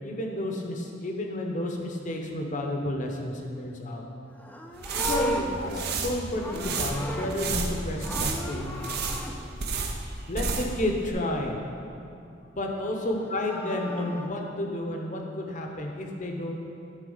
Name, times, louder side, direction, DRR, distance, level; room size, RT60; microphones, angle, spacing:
voice 1, 0.0-4.0 4.9-8.7 10.3-11.6 12.6-16.6, left 1 dB, 45° left, 1 dB, 1.0 m, -31 dB
Livestock farm animals working animals, 4.3-7.7 8.0-9.3 13.1-14.3, left 1 dB, 10° left, 0.5 m, -36 dB
sound 1, 4.7-10.8 11.1-11.2, right 4 dB, 60° right, 0.7 m, -31 dB
11.0 x 4.4 x 5.6 m, 2.6 s
head